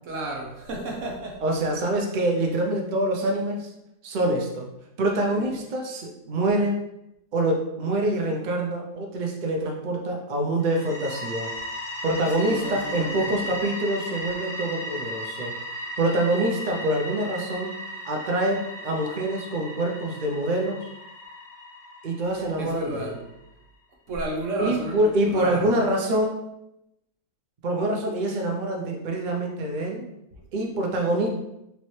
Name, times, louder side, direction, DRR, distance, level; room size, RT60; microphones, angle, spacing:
voice 1, 0.0-1.4 5.4-5.5 12.4-13.6 22.6-23.2 24.1-25.7, right 1 dB, 55° right, -1 dB, 1.1 m, -32 dB
voice 2, 1.4-3.7 4.0-4.7 5.0-6.8 7.3-11.5 12.0-15.5 16.0-17.7 18.1-20.9 22.0-23.2 24.6-26.4 27.6-30.1 30.5-31.3, right 1 dB, 75° right, 1 dB, 0.4 m, -25 dB
sound 1, 10.6-23.3, equal, 50° left, 1.0 m, -36 dB
4.2 x 3.0 x 3.1 m, 0.85 s
omnidirectional pair, 1.7 m